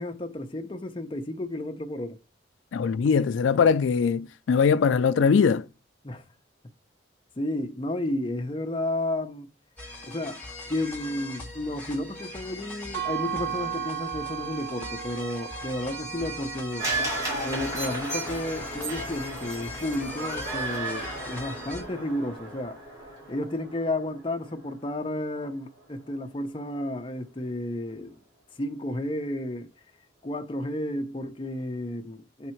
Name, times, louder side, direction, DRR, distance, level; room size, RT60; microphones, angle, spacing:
voice 1, 0.0-2.2 6.0-6.2 7.4-9.5 10.1-10.4 10.7-16.9 17.4-22.8 23.3-28.2 28.6-29.7 30.2-32.5, left 1 dB, 30° left, 0.6 m, -32 dB
voice 2, 2.7-5.7, left 6 dB, 85° left, 0.4 m, -21 dB
sound 1, 9.8-21.8, left 1 dB, 10° left, 1.4 m, -40 dB
sound 2, 12.9-18.7, right 11 dB, 50° right, 0.7 m, -36 dB
sound 3, 16.8-25.1 25.4-25.5, right 2 dB, 20° right, 3.6 m, -34 dB
7.3 x 3.6 x 4.4 m
head